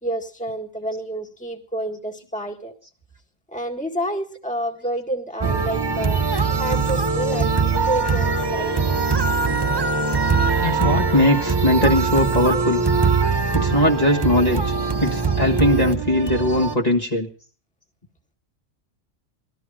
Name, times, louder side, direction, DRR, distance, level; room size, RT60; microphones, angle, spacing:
voice 1, 0.0-2.7 3.5-8.9, right 1 dB, 5° left, 2 dB, 1.9 m, -29 dB
sound 1, 5.4-16.8, right 4 dB, 25° right, 0.8 m, -22 dB
voice 2, 10.6-12.8 13.5-14.7 15.0-17.3, left 1 dB, 30° left, -2 dB, 1.8 m, -20 dB
19.5 x 13.0 x 5.0 m, 0.42 s
omnidirectional pair, 1.3 m